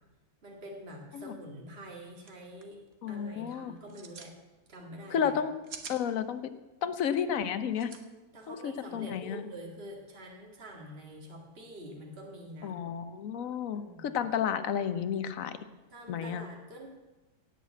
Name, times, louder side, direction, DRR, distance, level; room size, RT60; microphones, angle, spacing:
voice 1, 0.4-4.3 4.7-5.3 8.3-12.8 13.7-14.2 15.9-16.9, equal, 40° right, -1 dB, 2.2 m, -46 dB
sound 1, 1.9-2.0 2.2-2.3 2.6-2.9 3.8-4.3 5.4-6.0 7.7-8.0, right 6 dB, 65° right, 1.6 m, -45 dB
voice 2, 3.0-3.7 5.1-5.5 5.9-6.4 6.8-7.9 8.5-9.5 12.6-15.6 16.1-16.4, left 8 dB, 65° left, 11 dB, 1.2 m, -32 dB
17.5 x 5.9 x 8.4 m, 1.1 s
omnidirectional pair, 1.6 m